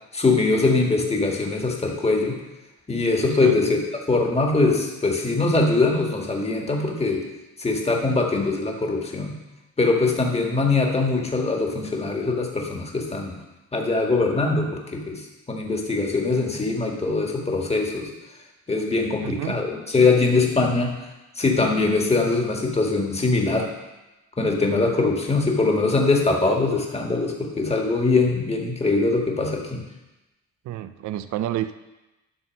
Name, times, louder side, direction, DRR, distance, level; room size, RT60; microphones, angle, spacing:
voice 1, 0.1-2.4 2.9-3.8 4.1-7.3 7.6-9.4 9.8-13.4 13.7-18.1 18.7-21.0 21.4-23.7 24.4-29.8, left 3 dB, 20° left, 0 dB, 1.8 m, -22 dB
voice 2, 19.2-19.6 30.7-31.8, right 12 dB, 70° right, 12 dB, 0.5 m, -29 dB
11.0 x 4.1 x 6.4 m, 1.0 s
cardioid pair, 90°, 30 cm